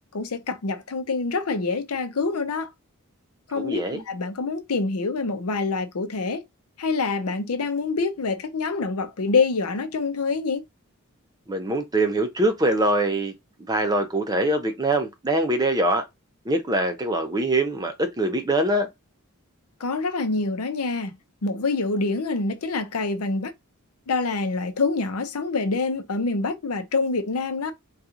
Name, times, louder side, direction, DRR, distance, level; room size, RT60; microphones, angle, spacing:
voice 1, 0.1-2.7 3.5-6.4 6.8-10.6 19.8-21.2 21.4-23.5 24.1-27.7, left 3 dB, 85° left, 0.6 m, -26 dB
voice 2, 3.6-4.0 11.5-13.3 13.7-16.0 16.5-18.9, right 1 dB, 15° right, 0.5 m, -23 dB
2.8 x 2.4 x 3.7 m
head